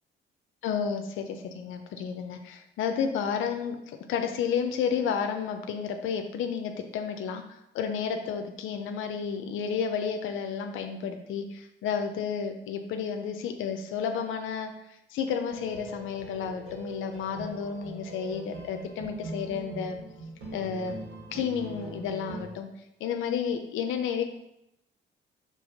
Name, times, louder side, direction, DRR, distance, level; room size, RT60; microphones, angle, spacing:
voice 1, 0.6-3.8 4.1-20.0 20.5-20.9 21.3-22.7 23.0-24.2, left 7 dB, 85° left, 5 dB, 0.6 m, -31 dB
sound 1, 15.5-22.4, right 2 dB, 75° right, 1.8 m, -42 dB
5.4 x 3.4 x 5.1 m, 0.83 s
cardioid pair, 90°, 20 cm